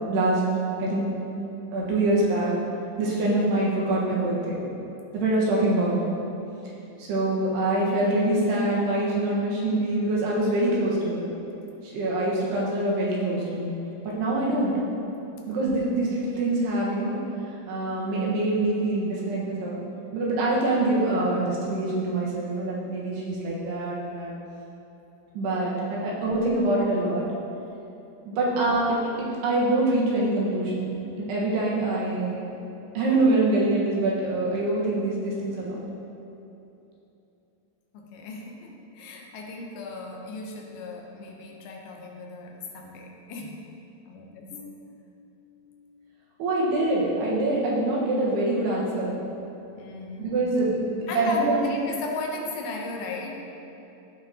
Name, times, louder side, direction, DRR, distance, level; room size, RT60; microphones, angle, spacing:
voice 1, 0.1-0.5 0.8-1.2 1.7-2.6 3.0-4.6 5.1-6.0 7.0-11.3 11.8-13.8 14.0-14.8 15.5-17.2 17.7-19.8 20.1-24.3 25.4-27.3 28.3-30.9 31.2-32.4 33.0-35.8 46.4-49.2 50.2-51.6, right 2 dB, 85° right, -5 dB, 3.5 m, -25 dB
voice 2, 37.9-43.6 44.1-45.3 49.8-50.4 51.1-53.4, left 3 dB, 75° left, 0 dB, 2.8 m, -37 dB
15.0 x 5.9 x 2.9 m, 2.9 s
omnidirectional pair, 4.6 m